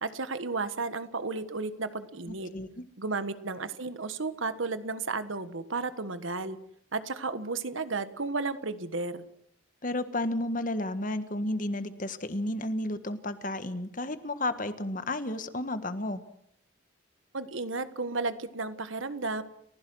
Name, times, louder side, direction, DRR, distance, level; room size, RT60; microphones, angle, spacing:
voice 1, 0.0-2.5 3.0-6.6 6.9-9.3 17.3-19.4, right 3 dB, 80° right, 12 dB, 1.4 m, -33 dB
voice 2, 2.3-2.8 9.8-16.2, left 1 dB, 40° left, 10 dB, 1.5 m, -32 dB
30.0 x 16.0 x 6.3 m, 0.73 s
head